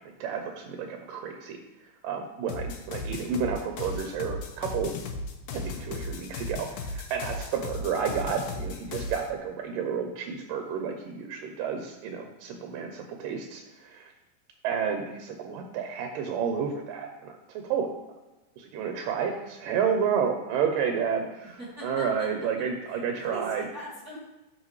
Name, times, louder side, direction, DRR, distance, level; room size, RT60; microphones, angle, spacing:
voice 1, 0.2-1.6 2.0-4.9 5.5-14.1 14.6-17.9 18.6-23.7, right 6 dB, 90° right, 4 dB, 2.5 m, -31 dB
sound 1, 2.5-9.3, left 3 dB, 90° left, 2.6 m, -36 dB
voice 2, 21.6-22.3 22.8-24.2, equal, 35° right, -6 dB, 1.7 m, -42 dB
12.5 x 6.0 x 3.2 m, 1.1 s
omnidirectional pair, 3.8 m